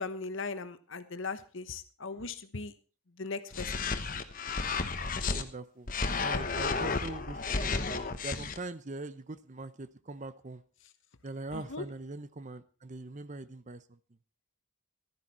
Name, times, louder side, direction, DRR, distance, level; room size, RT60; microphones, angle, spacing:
voice 1, 0.0-2.7 3.2-3.7 11.5-11.8, left 4 dB, 65° left, 1.2 m, -38 dB
sound 1, 3.5-5.4 5.9-8.6, left 4 dB, 40° left, 1.1 m, -32 dB
voice 2, 5.2-5.9 6.2-10.6 11.2-14.0, right 2 dB, 35° right, 0.7 m, -42 dB
15.0 x 12.5 x 4.3 m
head